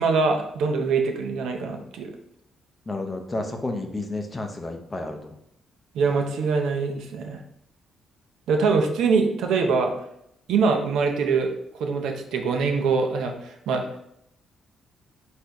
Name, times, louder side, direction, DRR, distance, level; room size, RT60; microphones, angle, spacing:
voice 1, 0.0-2.1 5.9-7.4 8.5-9.9 10.5-11.5 11.8-13.9, right 4 dB, 85° right, 4 dB, 0.6 m, -23 dB
voice 2, 2.9-5.4, left 2 dB, 20° left, 5 dB, 0.5 m, -31 dB
4.3 x 2.6 x 4.6 m, 0.77 s
cardioid pair, 135°, 0 cm